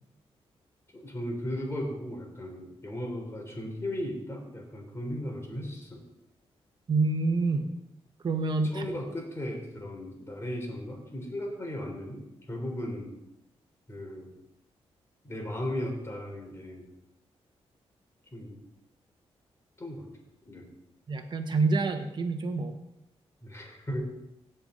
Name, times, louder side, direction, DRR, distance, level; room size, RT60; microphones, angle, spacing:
voice 1, 0.9-6.0 8.6-13.1 13.9-14.3 15.2-16.9 18.3-18.6 19.8-20.0 20.4-20.7 23.4-24.1, left 1 dB, 25° left, 0 dB, 3.7 m, -36 dB
voice 2, 6.9-7.7 8.2-8.9 21.1-22.8, right 3 dB, 45° right, 4 dB, 1.4 m, -27 dB
16.5 x 5.8 x 5.1 m, 0.87 s
cardioid pair, 95°, 11 cm